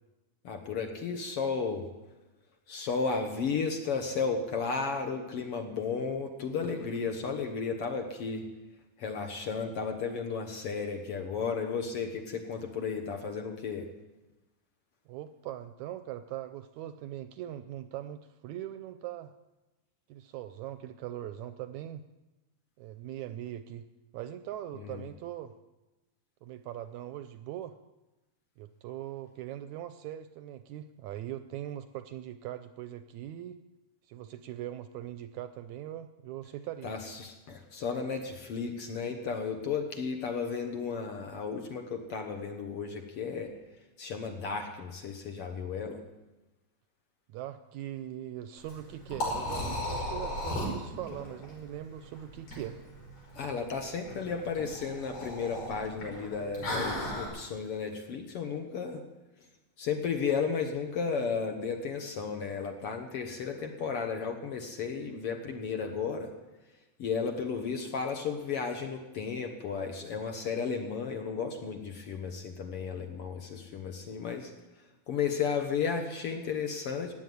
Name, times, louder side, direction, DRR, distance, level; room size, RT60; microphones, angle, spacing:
voice 1, 0.4-1.9 2.7-8.5 9.0-13.9 24.7-25.0 36.8-43.5 44.0-46.0 53.4-59.0 59.8-66.3 67.0-74.5 75.1-77.1, left 5 dB, 55° left, 4 dB, 1.8 m, -34 dB
voice 2, 15.1-19.3 20.1-22.0 22.8-23.9 24.1-25.6 26.4-27.8 28.6-33.6 34.1-36.9 47.3-52.8, right 12 dB, 75° right, 11 dB, 1.8 m, -41 dB
Liquid, 48.6-57.3, left 1 dB, 85° left, 6.5 m, -36 dB
15.0 x 9.3 x 9.4 m, 1.1 s
omnidirectional pair, 3.7 m